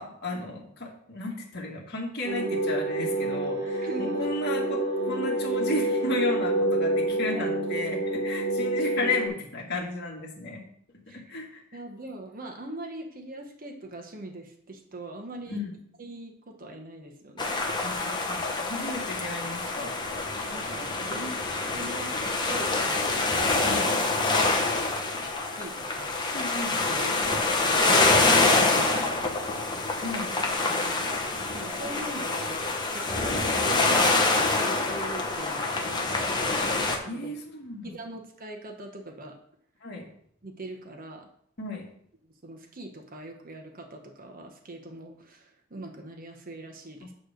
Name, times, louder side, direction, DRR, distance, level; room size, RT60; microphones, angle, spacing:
voice 1, 0.0-10.6 11.1-11.6 15.5-15.7 17.8-20.2 23.6-23.9 26.3-26.7 30.0-30.3 36.6-36.7 37.1-38.0 39.8-40.1 41.6-41.9, left 2 dB, 50° left, -2 dB, 2.0 m, -34 dB
sound 1, 2.2-9.3, right 1 dB, 60° right, 1.6 m, -27 dB
voice 2, 3.8-4.2 7.3-7.5 11.1-11.2 11.7-15.6 16.0-17.6 20.5-21.3 21.6-23.7 24.3-25.0 25.5-26.1 26.9-28.1 28.3-29.9 30.7-31.2 31.5-34.2 34.5-36.7 37.0-37.3 37.8-39.4 40.4-41.3 42.4-47.1, right 1 dB, 45° right, 3 dB, 1.1 m, -42 dB
sound 2, 17.4-37.0, left 3 dB, 20° left, 1.0 m, -26 dB
9.1 x 3.3 x 6.5 m, 0.68 s
head